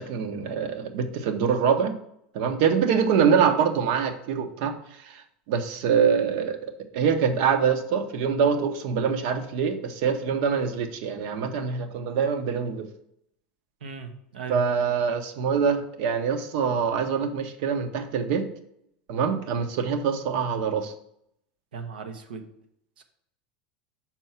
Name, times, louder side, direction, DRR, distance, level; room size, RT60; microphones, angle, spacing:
voice 1, 0.0-1.9 2.3-4.8 5.1-5.2 5.5-12.9 14.5-18.5 19.1-20.9, right 6 dB, 65° right, 8 dB, 1.0 m, -24 dB
voice 2, 13.8-14.6 21.7-22.5 23.0-23.1, right 5 dB, 90° right, 6 dB, 1.0 m, -38 dB
6.0 x 4.6 x 5.7 m, 0.76 s
hypercardioid pair, 105°, 5 cm